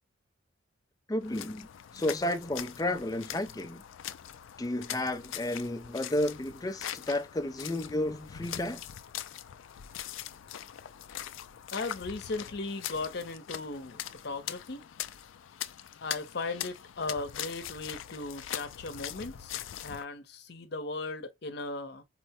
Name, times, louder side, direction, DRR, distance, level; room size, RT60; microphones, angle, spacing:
voice 1, 1.1-3.8 4.6-8.8, left 1 dB, 20° left, 0.4 m, -32 dB
sound 1, 1.2-20.0, left 11 dB, 80° left, 0.4 m, -42 dB
voice 2, 11.7-14.9 16.0-22.0, left 3 dB, 55° left, 0.8 m, -37 dB
4.3 x 2.1 x 2.8 m
head